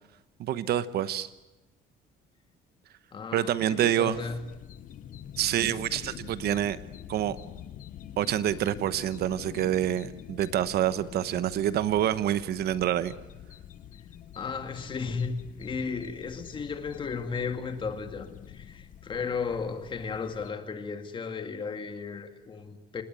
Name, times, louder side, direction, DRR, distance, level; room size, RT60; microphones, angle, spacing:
voice 1, 0.4-1.3 3.3-4.2 5.4-6.8 7.1-7.4 8.2-13.1, right 11 dB, 60° right, 1.1 m, -27 dB
voice 2, 3.1-4.4 14.4-23.0, left 5 dB, 25° left, 2.2 m, -34 dB
sound 1, 4.1-20.5, left 10 dB, 45° left, 1.0 m, -46 dB
28.0 x 19.0 x 9.0 m
cardioid pair, 170°, 19 cm